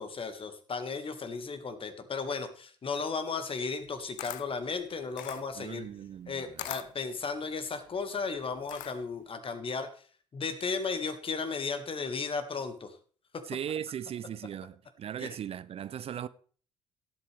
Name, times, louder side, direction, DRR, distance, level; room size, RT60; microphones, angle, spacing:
voice 1, 0.0-5.8 6.3-9.9 10.3-13.0 13.3-13.4 15.2-15.4, left 4 dB, 35° left, 1.8 m, -35 dB
Camera, 3.8-9.2, left 14 dB, 60° left, 0.6 m, -44 dB
voice 2, 5.6-6.7 13.5-16.3, right 9 dB, 40° right, 0.5 m, -38 dB
18.0 x 8.3 x 3.4 m
figure-of-eight pair, 45°, 15 cm